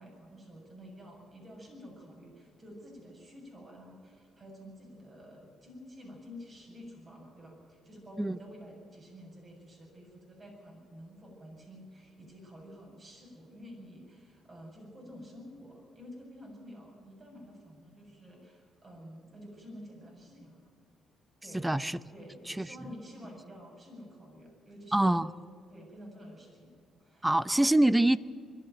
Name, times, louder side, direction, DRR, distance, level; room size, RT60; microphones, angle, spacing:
voice 1, 0.0-20.7 21.4-21.7 22.1-25.2 25.7-27.3, equal, 35° right, 0 dB, 7.8 m, -50 dB
voice 2, 21.5-22.0 22.5-22.7 24.9-25.3 27.2-28.2, right 1 dB, 10° right, 17 dB, 0.7 m, -25 dB
22.0 x 14.0 x 9.3 m, 2.2 s
cardioid pair, 90°, 0 cm